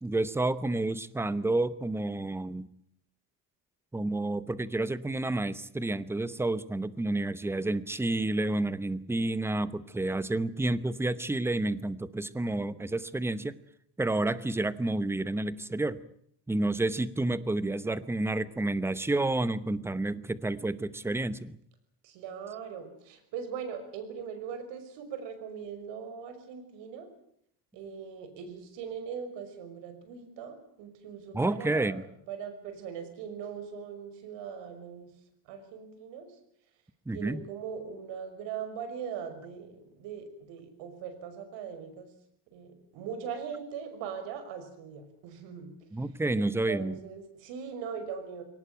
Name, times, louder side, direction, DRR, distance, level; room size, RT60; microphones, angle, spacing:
voice 1, 0.0-2.7 3.9-13.6 14.0-16.0 16.5-21.6 31.3-32.0 37.1-37.4 45.9-46.9, right 2 dB, 5° right, 16 dB, 0.9 m, -30 dB
voice 2, 22.0-27.1 27.7-35.1 35.5-36.3 37.1-42.1 42.5-45.7 46.4-48.4, right 7 dB, 75° right, 9 dB, 5.9 m, -40 dB
22.5 x 18.5 x 9.1 m, 0.69 s
cardioid pair, 145°, 44 cm